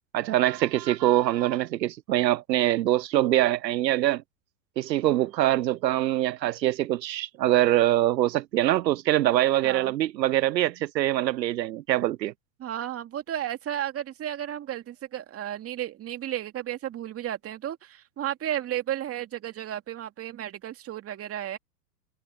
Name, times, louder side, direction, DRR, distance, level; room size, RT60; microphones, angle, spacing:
voice 1, 0.1-4.2 4.8-12.3, right 14 dB, 80° right, 0.7 m, -24 dB
voice 2, 9.6-9.9 12.6-21.6, right 11 dB, 30° right, 2.4 m, -33 dB
hypercardioid pair, 105°, 50 cm